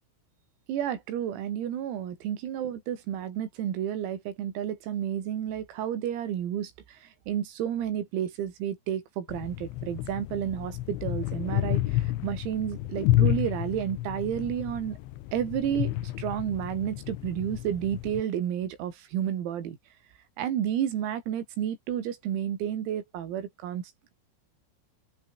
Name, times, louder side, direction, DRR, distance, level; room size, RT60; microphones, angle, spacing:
voice 1, 0.7-15.0 15.3-19.8 20.4-23.8, right 10 dB, 90° right, 5.8 m, -31 dB
sound 1, 9.3-18.2, left 16 dB, 75° left, 3.4 m, -30 dB
open air
omnidirectional pair, 6.0 m